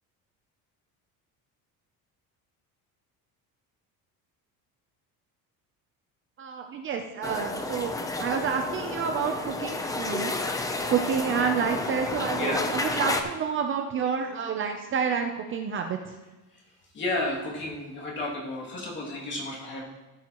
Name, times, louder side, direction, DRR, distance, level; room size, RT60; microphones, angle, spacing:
voice 1, 6.4-7.9 8.2-10.3 10.9-16.2, right 6 dB, 35° right, 4 dB, 0.6 m, -29 dB
sound 1, 7.2-13.2, left 2 dB, 10° left, 0.5 m, -31 dB
voice 2, 16.9-19.8, left 2 dB, 30° left, -3 dB, 2.4 m, -32 dB
14.5 x 9.0 x 3.0 m, 1.1 s
cardioid pair, 165°, 37 cm